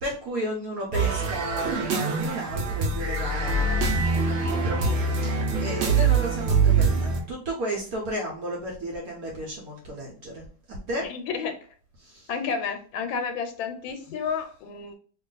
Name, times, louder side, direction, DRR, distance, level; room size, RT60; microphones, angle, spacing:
voice 1, 0.0-3.9 4.3-11.1 12.0-12.3, right 1 dB, 65° right, -1 dB, 0.9 m, -33 dB
sound 1, 0.9-7.2, right 4 dB, 90° right, 0.6 m, -24 dB
voice 2, 11.0-11.5 12.3-14.9, left 6 dB, 85° left, 6 dB, 1.4 m, -31 dB
3.0 x 2.4 x 3.8 m, 0.44 s
omnidirectional pair, 2.1 m